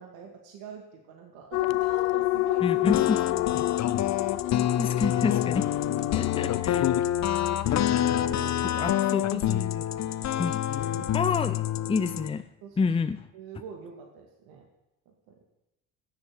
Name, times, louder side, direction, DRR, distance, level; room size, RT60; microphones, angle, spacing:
voice 1, 0.0-3.8 5.8-6.2 7.8-8.8 9.1-9.6 10.3-10.6 10.9-11.2 12.6-12.9 13.3-14.7 15.1-15.4, right 6 dB, 70° right, 2 dB, 2.2 m, -45 dB
sound 1, 1.5-6.8, left 22 dB, 80° left, 0.6 m, -29 dB
voice 2, 2.6-3.2 4.8-5.7 6.1-7.0 8.7-9.8 10.4-10.6 11.1-12.4 12.8-13.2, left 5 dB, 15° left, 11 dB, 0.7 m, -29 dB
sound 2, 2.8-12.3, left 11 dB, 45° left, 0.9 m, -27 dB
13.0 x 8.2 x 8.9 m, 0.93 s
hypercardioid pair, 75°, 39 cm